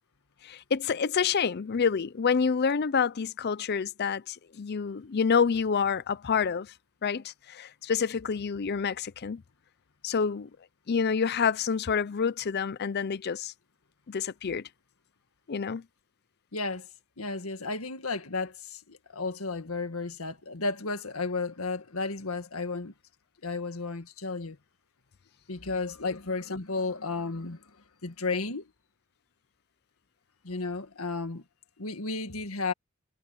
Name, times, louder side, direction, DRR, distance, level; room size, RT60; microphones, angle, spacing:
voice 1, 0.4-6.7 7.0-9.4 10.0-10.5 10.9-13.5 14.1-14.6 15.5-15.8, left 6 dB, 50° left, 0.5 m, -28 dB
voice 2, 16.5-16.9 17.2-22.9 23.4-24.6 25.5-27.7 28.0-28.7 30.4-31.4 31.8-32.7, left 3 dB, 90° left, 1.8 m, -33 dB
head